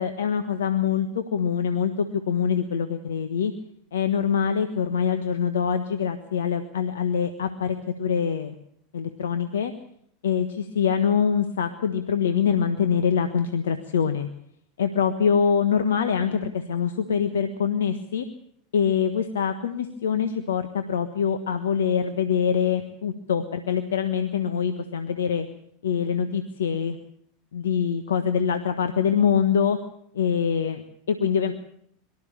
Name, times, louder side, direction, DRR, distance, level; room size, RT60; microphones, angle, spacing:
voice 1, 0.0-3.5 3.9-8.5 8.9-9.7 10.2-14.3 14.8-18.3 18.7-25.5 25.8-27.0 27.5-29.8 30.1-31.5, left 7 dB, 75° left, 9 dB, 1.3 m, -24 dB
23.0 x 13.5 x 8.9 m, 0.68 s
hypercardioid pair, 90°, 0 cm